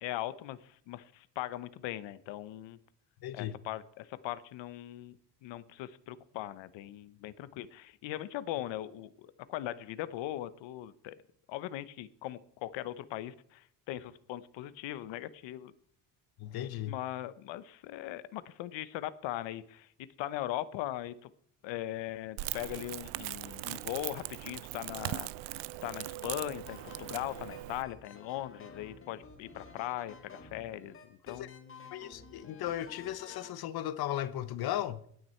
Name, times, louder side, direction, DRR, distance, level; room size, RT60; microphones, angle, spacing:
voice 1, 0.0-2.8 3.3-5.2 5.4-11.2 11.5-15.7 16.9-19.9 20.2-21.3 21.6-31.9, left 14 dB, 85° left, 1.1 m, -40 dB
voice 2, 3.2-3.6 16.4-17.0 31.3-31.5 31.9-35.0, left 12 dB, 60° left, 1.0 m, -36 dB
Crackle, 22.4-27.8, right 17 dB, 80° right, 0.6 m, -40 dB
sound 1, 26.7-33.6, left 4 dB, 30° left, 2.1 m, -52 dB
17.5 x 9.5 x 4.5 m
cardioid pair, 145°, 43 cm